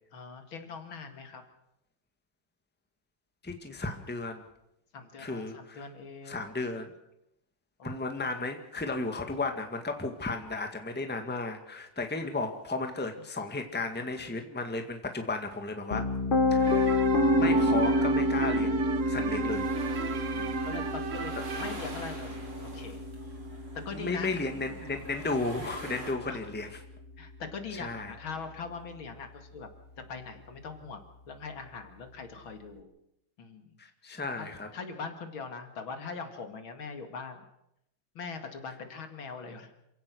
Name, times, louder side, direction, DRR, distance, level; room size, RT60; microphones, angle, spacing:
voice 1, 0.1-1.4 4.9-6.5 7.8-8.3 20.0-23.0 23.8-24.3 26.3-26.5 27.2-29.7 30.0-32.9 33.4-33.8 34.4-37.5 38.1-39.7, left 5 dB, 65° left, 6 dB, 2.9 m, -42 dB
voice 2, 3.4-4.4 5.2-5.8 6.3-6.9 7.8-16.1 16.5-17.0 17.3-19.7 20.3-20.5 23.9-26.7 27.8-28.1 33.8-34.7, left 3 dB, 5° left, 5 dB, 1.7 m, -34 dB
Piano, 15.9-27.8, left 1 dB, 35° left, 0.9 m, -29 dB
sound 1, 16.6-21.8, right 7 dB, 50° right, 1.0 m, -36 dB
sound 2, 18.9-26.1, right 2 dB, 75° right, 5.1 m, -46 dB
27.5 x 16.5 x 6.3 m, 0.81 s
omnidirectional pair, 2.4 m